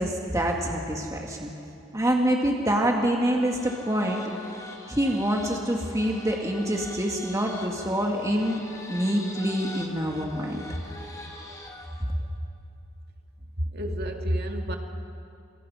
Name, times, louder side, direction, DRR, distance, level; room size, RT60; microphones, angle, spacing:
voice 1, 0.0-1.5 1.9-4.2 4.9-8.6 8.9-10.6, equal, 15° right, 0 dB, 2.0 m, -26 dB
sound 1, 3.3-12.1, left 2 dB, 15° left, 2.6 m, -43 dB
voice 2, 13.6-14.8, equal, 55° right, 3 dB, 2.4 m, -29 dB
27.0 x 27.0 x 5.7 m, 2.7 s
head